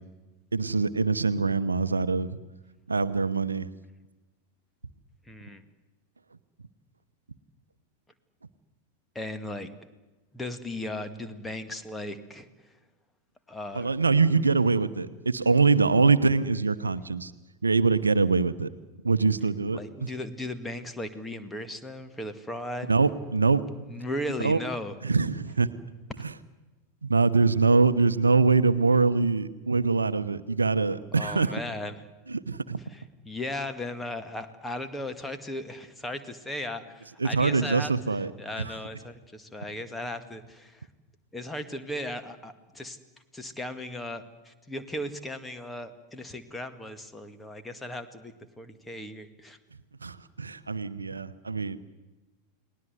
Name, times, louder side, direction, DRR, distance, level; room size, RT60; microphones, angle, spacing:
voice 1, 0.5-2.4 2.9-3.7 13.7-17.3 17.6-18.7 19.0-19.8 22.9-23.6 24.4-24.6 25.0-25.7 26.2-26.3 27.0-31.6 32.3-32.8 37.2-38.3 38.6-38.8 50.0-51.8, right 4 dB, 75° right, 14 dB, 0.9 m, -24 dB
voice 2, 5.3-5.6 9.2-9.7 10.3-12.5 13.5-13.9 14.3-14.5 19.7-22.9 23.9-24.9 31.2-31.9 32.9-37.9 38.4-40.9 41.3-43.0 43.3-49.6, left 1 dB, 10° left, 8 dB, 2.0 m, -36 dB
30.0 x 19.5 x 8.1 m, 1.1 s
figure-of-eight pair, 90°, 0 cm